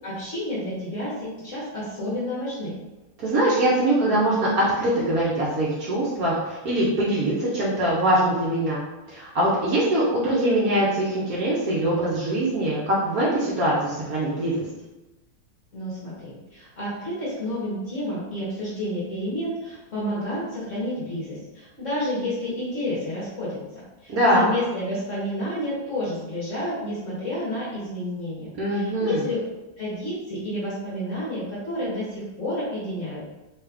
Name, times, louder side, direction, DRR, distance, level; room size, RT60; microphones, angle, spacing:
voice 1, 0.0-2.8 15.7-23.6 24.0-29.4 29.8-33.2, left 1 dB, 50° left, -8 dB, 1.1 m, -30 dB
voice 2, 3.2-4.5 4.8-8.8 9.1-14.6 24.1-24.5 28.5-29.2, right 1 dB, 60° right, -7 dB, 1.0 m, -23 dB
3.2 x 2.4 x 3.4 m, 1.0 s
omnidirectional pair, 2.1 m